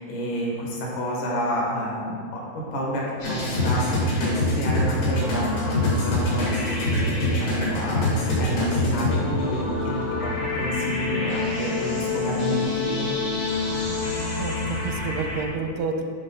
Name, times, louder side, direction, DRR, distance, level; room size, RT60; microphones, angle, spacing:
voice 1, 0.0-3.0 3.3-7.2 7.6-13.1, equal, 65° left, -3 dB, 2.5 m, -30 dB
sound 1, 3.2-15.4, left 2 dB, 80° left, 4.3 m, -25 dB
voice 2, 13.7-16.0, right 4 dB, 85° right, 5 dB, 2.6 m, -31 dB
10.0 x 4.0 x 5.5 m, 2.1 s
omnidirectional pair, 4.5 m